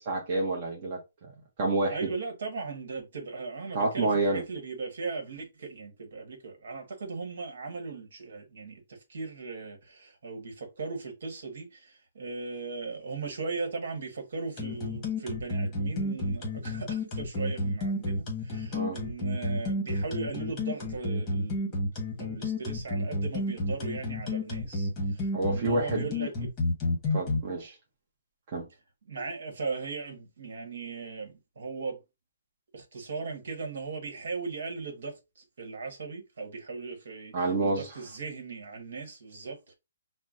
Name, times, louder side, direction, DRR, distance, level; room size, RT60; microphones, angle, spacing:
voice 1, 0.0-1.3 1.6-2.0 3.7-4.4 18.7-19.0 25.3-26.1 27.1-27.7 28.5-28.6 37.3-37.8, right 2 dB, 30° right, 0.8 m, -28 dB
voice 2, 1.9-21.8 22.2-26.5 29.1-32.0 32.7-39.7, right 4 dB, 60° right, 1.3 m, -38 dB
sound 1, 14.6-27.4, left 2 dB, 15° left, 1.1 m, -30 dB
5.8 x 2.1 x 2.4 m
hypercardioid pair, 170°, 0 cm